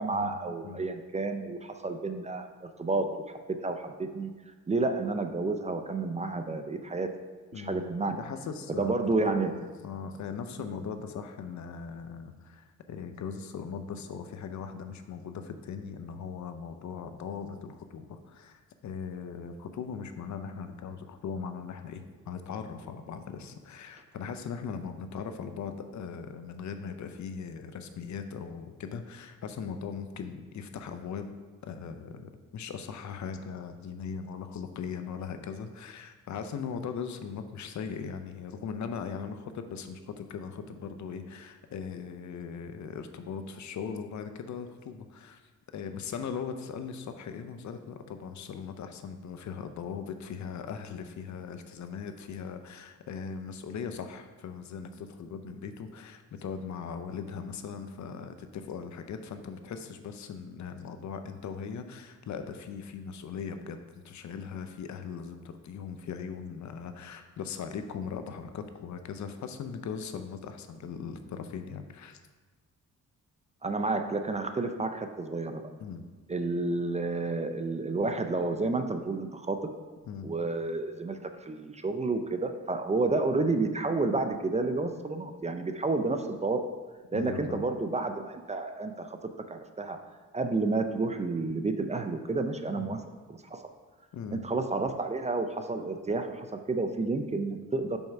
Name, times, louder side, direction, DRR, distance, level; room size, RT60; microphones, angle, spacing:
voice 1, 0.0-4.3 4.7-7.1 7.5-8.2 8.8-9.5 73.6-75.6 76.3-79.7 80.2-86.7 87.1-89.2 89.5-90.0 90.3-93.0 93.3-93.7 94.3-98.0, right 3 dB, 20° right, 7 dB, 0.5 m, -30 dB
voice 2, 7.5-31.3 31.6-45.4 45.7-63.8 64.0-72.2 75.8-76.0 80.0-80.3 87.1-87.6 92.7-93.0 94.1-94.4, left 6 dB, 65° left, 8 dB, 0.6 m, -39 dB
5.4 x 4.5 x 5.8 m, 1.3 s
cardioid pair, 90°, 31 cm